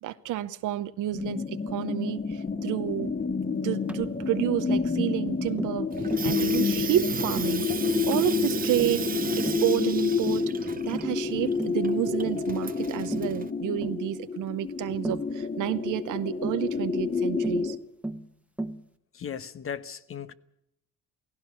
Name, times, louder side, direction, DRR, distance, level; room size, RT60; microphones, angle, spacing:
voice 1, 0.0-3.1 3.6-5.9 6.2-7.7 8.0-9.1 9.3-17.8, right 13 dB, 85° right, 0.8 m, -30 dB
sound 1, 1.1-17.8, left 5 dB, 30° left, 1.9 m, -29 dB
Tap, 3.9-4.1 4.7-4.9 5.6-5.8 6.1-6.3 6.8-7.0 7.4-7.6 8.1-8.3 8.8-9.0 9.5-9.7 10.3-10.5 10.9-11.2 11.6-11.8 12.3-12.4 13.1-13.4 13.8-14.0 15.0-15.3 16.4-16.6 17.4-17.7 18.0-18.3 18.6-18.8, right 2 dB, 5° right, 1.3 m, -35 dB
Water tap faucet / Sink (filling or washing), 5.9-13.5, right 6 dB, 30° right, 0.8 m, -35 dB
voice 2, 19.1-20.3, left 8 dB, 45° left, 1.1 m, -37 dB
16.5 x 16.5 x 9.4 m
cardioid pair, 90°, 30 cm